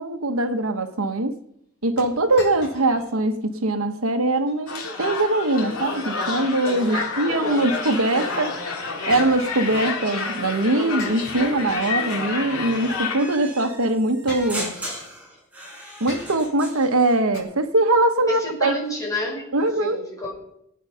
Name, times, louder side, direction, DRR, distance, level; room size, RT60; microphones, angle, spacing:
voice 1, 0.0-1.3 1.8-8.6 9.1-14.8 16.0-18.7 19.5-20.0, right 2 dB, 80° right, 1.2 m, -22 dB
sound 1, 2.0-3.2 3.5-3.6 4.2-4.6 6.5-7.4 9.1-10.1 11.0-12.2 13.3-13.4 14.3-15.1 16.1-16.7 17.3-17.4, left 2 dB, 55° left, 4.6 m, -40 dB
sound 2, 4.7-13.4, left 4 dB, 90° left, 2.3 m, -29 dB
voice 2, 6.8-7.6 18.3-20.3, left 1 dB, 15° left, 6.0 m, -29 dB
sound 3, 13.2-17.2, right 1 dB, 10° right, 5.1 m, -36 dB
19.5 x 9.6 x 5.7 m
head